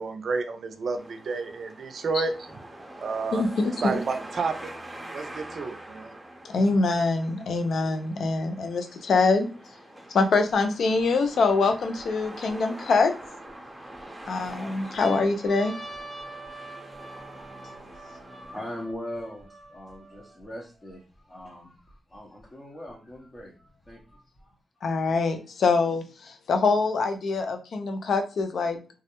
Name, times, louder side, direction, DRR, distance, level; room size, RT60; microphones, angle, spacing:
voice 1, 0.0-2.3 3.0-3.5 3.8-4.7 5.1-6.1 6.6-6.7, right 4 dB, 65° right, 8 dB, 0.4 m, -30 dB
sound 1, 1.0-18.9, right 1 dB, 20° right, 0.6 m, -44 dB
voice 2, 3.3-4.0 6.4-9.5 10.1-13.1 14.3-15.7 24.8-28.8, left 3 dB, 75° left, 7 dB, 0.4 m, -24 dB
sound 2, 10.5-10.6 11.2-12.5 13.2-14.0 14.5-14.6 14.8-20.4 21.1-21.2 21.4-22.4 23.4-24.4, right 1 dB, 55° left, 1.2 m, -45 dB
voice 3, 18.1-24.6, left 1 dB, 25° left, -2 dB, 0.7 m, -41 dB
2.3 x 2.0 x 2.9 m, 0.35 s
cardioid pair, 60°, 0 cm